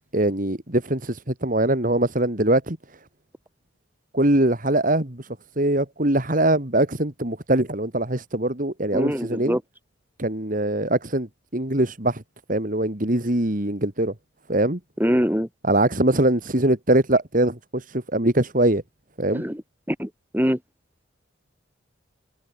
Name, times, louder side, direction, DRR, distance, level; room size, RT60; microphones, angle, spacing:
voice 1, 0.1-2.8 4.1-5.2 5.6-9.6 10.2-11.3 11.5-12.2 12.5-14.1 14.5-14.8 15.6-18.8 19.2-19.4, right 1 dB, 40° right, 2.6 m, -22 dB
voice 2, 8.9-9.6 15.0-15.5 19.3-19.6 19.9-20.1 20.3-20.6, equal, 10° right, 4.1 m, -23 dB
head